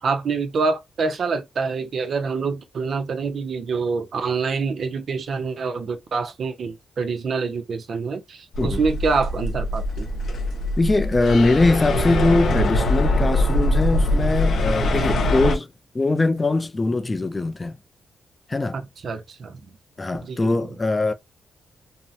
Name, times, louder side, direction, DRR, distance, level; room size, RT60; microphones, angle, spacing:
voice 1, 0.0-10.1 18.7-19.5 20.3-20.5, right 4 dB, 60° right, 0.5 m, -26 dB
sound 1, 8.5-15.6, left 1 dB, 70° left, 0.6 m, -22 dB
voice 2, 10.8-15.7 15.9-17.8 18.5-18.8 20.0-21.1, left 2 dB, 25° left, 0.3 m, -21 dB
2.6 x 2.0 x 2.6 m
cardioid pair, 100°, 0 cm